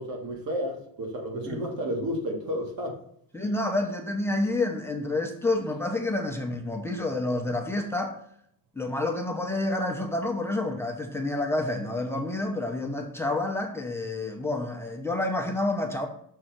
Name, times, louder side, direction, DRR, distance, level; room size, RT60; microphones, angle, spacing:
voice 1, 0.0-3.0, equal, 75° right, 1 dB, 2.1 m, -31 dB
voice 2, 3.3-8.2 8.8-16.1, left 2 dB, 5° left, 1 dB, 0.8 m, -29 dB
6.5 x 3.7 x 5.9 m, 0.67 s
cardioid pair, 160°, 34 cm